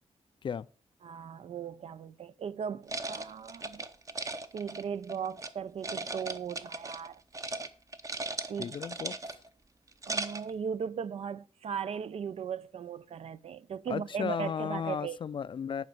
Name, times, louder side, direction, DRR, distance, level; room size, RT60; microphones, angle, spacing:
voice 1, 1.0-3.8 4.5-7.2 8.5-8.7 10.0-15.2, right 7 dB, 65° right, 0.5 m, -37 dB
sound 1, 2.9-5.5 5.8-7.1 7.3-7.7 7.9-9.5 9.9-10.5, right 3 dB, 30° right, 0.8 m, -37 dB
voice 2, 8.6-9.4 13.9-15.8, left 7 dB, 45° left, 0.4 m, -35 dB
10.5 x 5.2 x 7.1 m
wide cardioid pair, 150°, 11 cm